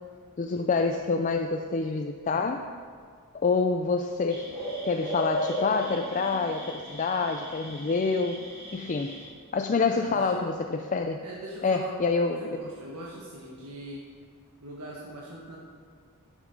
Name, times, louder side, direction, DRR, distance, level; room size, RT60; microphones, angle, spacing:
voice 1, 0.4-2.7 3.3-4.5 4.8-8.5 8.7-9.2 9.5-11.2 11.6-12.4, left 4 dB, 35° left, 5 dB, 0.3 m, -27 dB
sound 1, 4.3-9.3, equal, 45° right, 2.6 m, -35 dB
voice 2, 9.9-10.5 11.2-14.1 14.6-15.6, right 1 dB, 85° right, -4 dB, 1.4 m, -41 dB
9.9 x 7.2 x 5.2 m, 2.1 s
head